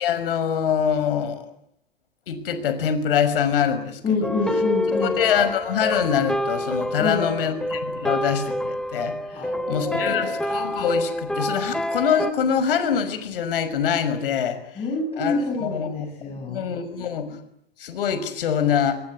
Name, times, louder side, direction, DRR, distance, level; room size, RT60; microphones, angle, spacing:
voice 1, 0.0-1.5 2.3-4.0 5.0-14.8 15.2-17.4 17.8-19.0, left 8 dB, 65° left, 11 dB, 6.0 m, -24 dB
voice 2, 4.0-5.2 7.0-7.5 9.3-10.3 14.8-16.6, left 3 dB, 20° left, 0 dB, 8.0 m, -27 dB
sound 1, 4.2-12.3, left 1 dB, ahead, 1.3 m, -27 dB
27.0 x 22.0 x 9.8 m, 0.69 s
figure-of-eight pair, 100°, 31 cm